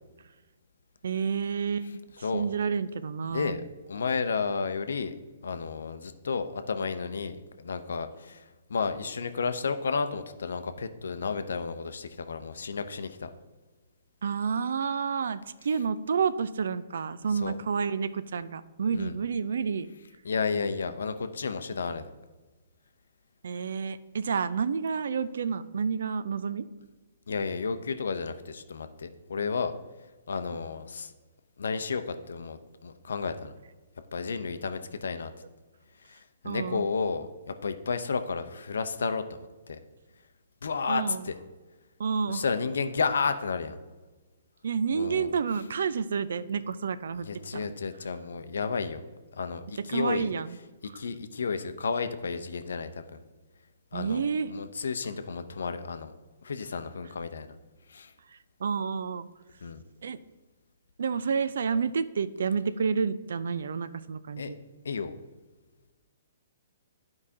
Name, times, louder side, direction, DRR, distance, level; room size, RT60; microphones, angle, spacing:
voice 1, 1.0-2.0 2.3-3.6 14.2-19.9 23.4-26.7 36.4-36.9 40.9-41.3 42.0-42.4 44.6-47.3 47.5-47.7 49.9-50.6 53.9-54.5 58.6-59.3 60.0-60.2 61.0-64.6, right 6 dB, 70° right, 14 dB, 0.4 m, -29 dB
voice 2, 3.3-5.1 5.4-13.3 17.3-17.5 18.9-19.1 20.2-22.1 27.3-29.7 30.3-31.1 31.6-33.5 34.1-35.3 36.0-39.8 40.6-41.3 42.3-43.8 44.9-45.3 47.2-49.0 49.3-50.3 50.8-53.2 53.9-56.1 56.4-57.5 57.9-58.1 59.6-59.8 64.4-64.5 64.8-65.2, left 5 dB, 75° left, 10 dB, 0.6 m, -32 dB
11.5 x 4.8 x 2.8 m, 1.3 s
hypercardioid pair, 130°, 0 cm